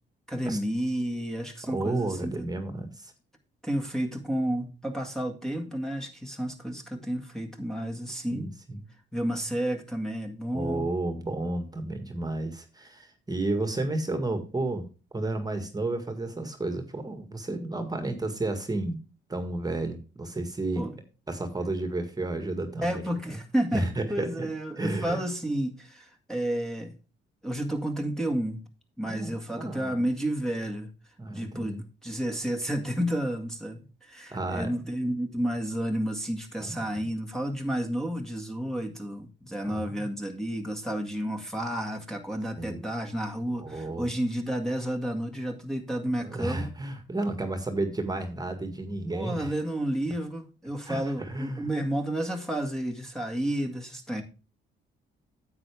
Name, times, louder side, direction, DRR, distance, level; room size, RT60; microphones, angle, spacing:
voice 1, 0.3-2.5 3.6-8.5 9.1-10.9 20.8-21.0 22.8-26.9 27.4-28.6 29.0-30.9 31.3-46.7 48.8-54.2, right 1 dB, ahead, 0 dB, 1.8 m, -31 dB
voice 2, 1.6-3.1 8.3-8.8 10.5-14.9 15.1-19.0 19.3-20.9 21.3-23.0 23.3-23.4 23.7-24.5 24.8-25.2 29.0-30.0 31.2-31.8 34.3-34.7 36.6-37.1 39.6-40.1 42.5-42.8 43.6-44.1 46.2-49.5 50.9-51.7, right 2 dB, 20° right, 7 dB, 1.8 m, -32 dB
9.8 x 8.1 x 3.4 m, 0.33 s
cardioid pair, 90°, 20 cm